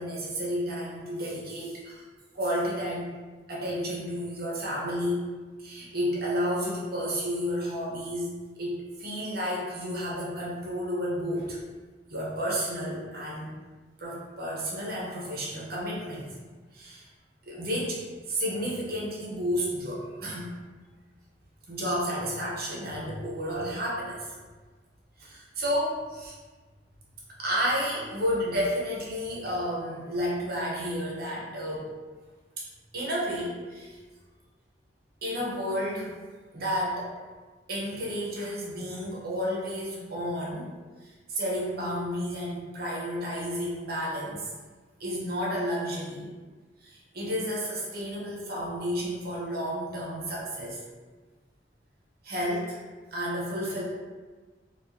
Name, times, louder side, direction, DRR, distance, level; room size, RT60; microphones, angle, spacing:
voice 1, 0.0-2.0 2.3-3.1 3.5-5.3 5.6-8.3 8.6-11.6 12.1-13.5 14.0-16.3 16.7-17.1 17.5-20.5 21.7-24.3 25.2-26.4 27.4-31.9 32.6-32.7 32.9-34.0 35.2-36.1 36.5-37.1 37.7-40.7 41.0-44.5 45.0-46.3 46.8-50.8 52.2-52.8 53.1-53.8, equal, 60° right, -4 dB, 0.9 m, -31 dB
4.3 x 2.4 x 2.8 m, 1.4 s
head